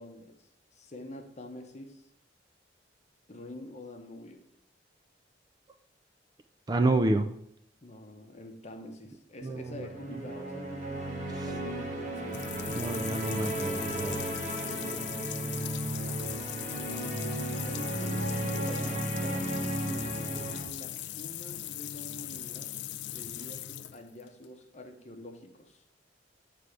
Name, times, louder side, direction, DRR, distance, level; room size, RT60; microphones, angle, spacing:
voice 1, 0.0-2.1 3.3-4.4 7.8-12.1 14.6-15.8 17.6-22.7 23.1-25.8, left 1 dB, 40° left, 4 dB, 0.8 m, -46 dB
voice 2, 6.7-7.3 9.4-10.2 11.4-11.5 12.7-14.3, right 2 dB, 20° right, 8 dB, 0.3 m, -29 dB
sound 1, 9.6-20.6, right 1 dB, 40° right, 1.1 m, -34 dB
sound 2, 12.1-24.4, left 12 dB, 70° left, 0.3 m, -39 dB
8.2 x 3.4 x 4.9 m, 0.72 s
head